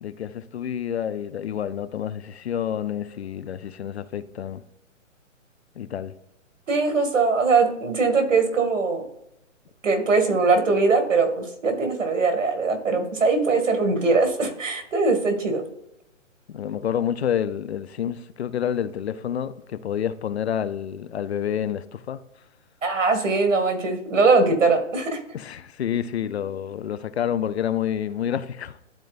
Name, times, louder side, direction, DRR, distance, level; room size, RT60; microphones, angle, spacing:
voice 1, 0.0-4.6 5.8-6.1 16.5-22.2 25.3-28.8, left 9 dB, 55° left, 0.6 m, -28 dB
voice 2, 6.7-9.0 9.8-15.6 22.8-25.2, right 4 dB, 70° right, 2.2 m, -21 dB
12.0 x 4.5 x 2.5 m
hypercardioid pair, 155°, 38 cm